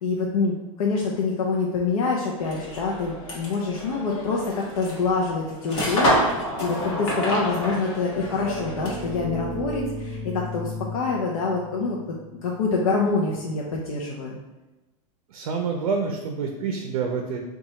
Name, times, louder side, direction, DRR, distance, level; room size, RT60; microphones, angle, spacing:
voice 1, 0.0-12.0 12.4-14.4, left 4 dB, 80° left, -2 dB, 0.5 m, -26 dB
sound 1, 2.4-9.2, equal, 60° left, 1.1 m, -28 dB
sound 2, 8.0-13.5, equal, 30° left, 0.8 m, -36 dB
voice 2, 15.3-17.4, right 5 dB, 85° right, 3 dB, 0.5 m, -27 dB
2.8 x 2.3 x 4.1 m, 1.1 s
supercardioid pair, 165°, 18 cm